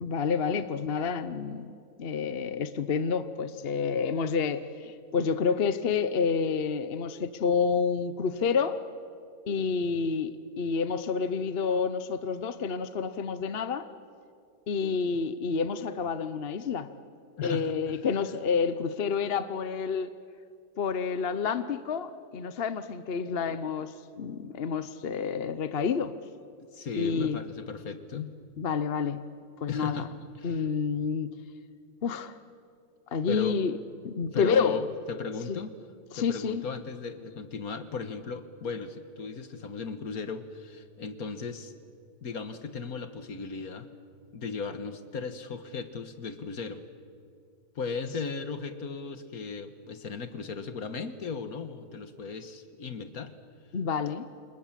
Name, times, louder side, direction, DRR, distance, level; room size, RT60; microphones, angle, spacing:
voice 1, 0.0-1.7 2.0-8.8 9.4-13.9 14.7-16.9 17.4-20.1 20.8-26.1 27.0-27.4 28.6-29.2 29.6-30.1 30.4-31.3 32.0-32.4 33.1-33.7 34.0-34.8 35.5-35.6 36.1-36.6 53.7-54.3, left 5 dB, 45° left, 12 dB, 0.9 m, -29 dB
voice 2, 17.4-17.7 26.7-28.3 29.7-30.1 30.4-30.6 33.3-33.6 34.3-35.7 36.2-41.7 42.2-43.9 44.3-46.8 47.8-53.3, left 5 dB, 65° left, 9 dB, 1.9 m, -36 dB
29.5 x 27.0 x 7.5 m, 2.3 s
omnidirectional pair, 1.7 m